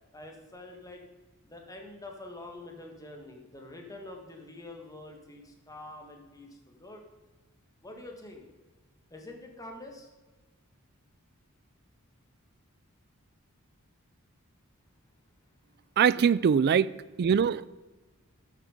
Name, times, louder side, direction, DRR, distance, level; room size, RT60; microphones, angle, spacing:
voice 1, 0.1-1.0 1.4-7.0 7.8-8.5 9.1-10.1, left 2 dB, 15° left, 2 dB, 1.6 m, -46 dB
voice 2, 16.0-16.9 17.2-17.7, right 7 dB, 50° right, 19 dB, 0.3 m, -22 dB
13.0 x 6.7 x 5.0 m, 1.2 s
head